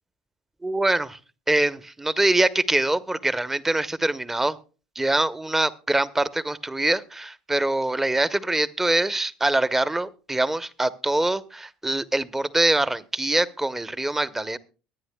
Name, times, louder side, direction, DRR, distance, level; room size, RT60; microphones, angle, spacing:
voice 1, 0.6-1.2 1.5-4.6 5.0-14.6, right 2 dB, 10° right, 15 dB, 0.9 m, -24 dB
23.0 x 9.6 x 2.3 m, 0.34 s
hypercardioid pair, 65°, 3 cm